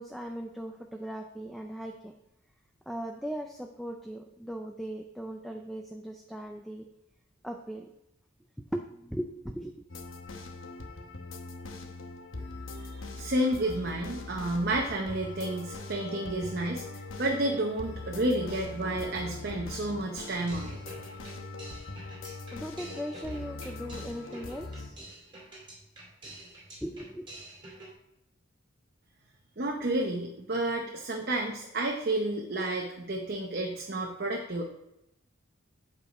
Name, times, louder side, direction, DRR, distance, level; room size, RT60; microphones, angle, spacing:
voice 1, 0.0-2.1 2.9-6.9 7.4-7.9 8.6-9.8 22.5-25.0 26.3-26.4 26.8-27.3, equal, ahead, 3 dB, 0.4 m, -38 dB
sound 1, 9.9-24.9, left 3 dB, 75° left, 0.9 m, -41 dB
voice 2, 12.7-20.8 29.6-34.6, right 1 dB, 50° right, 1 dB, 0.8 m, -31 dB
sound 2, 20.5-27.9, right 1 dB, 25° right, 2.3 m, -48 dB
8.2 x 4.8 x 4.9 m, 0.87 s
head